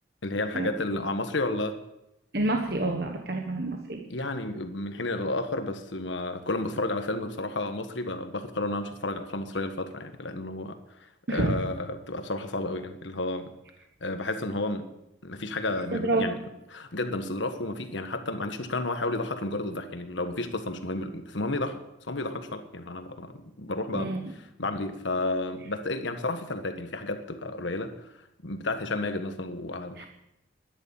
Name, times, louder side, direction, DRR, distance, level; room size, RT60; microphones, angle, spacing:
voice 1, 0.2-1.8 4.1-11.0 11.3-13.5 14.0-14.8 15.2-16.4 16.7-24.1 24.6-30.1, left 2 dB, 75° left, 8 dB, 1.4 m, -32 dB
voice 2, 2.3-4.0 11.3-11.6 15.9-16.3 23.9-24.2 30.0-30.1, right 2 dB, 55° right, 3 dB, 1.2 m, -28 dB
11.0 x 11.0 x 7.1 m, 0.88 s
head